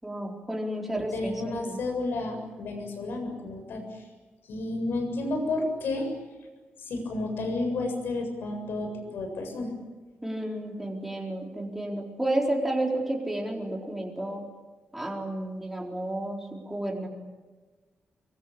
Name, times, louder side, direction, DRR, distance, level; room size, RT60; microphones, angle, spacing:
voice 1, 0.0-1.8 10.2-14.5 14.9-17.1, right 1 dB, 5° right, -1 dB, 4.3 m, -31 dB
voice 2, 0.9-4.0 4.5-6.1 6.8-9.7, left 2 dB, 85° left, 5 dB, 7.6 m, -31 dB
25.0 x 23.5 x 8.7 m, 1.3 s
wide cardioid pair, 170°, 4 cm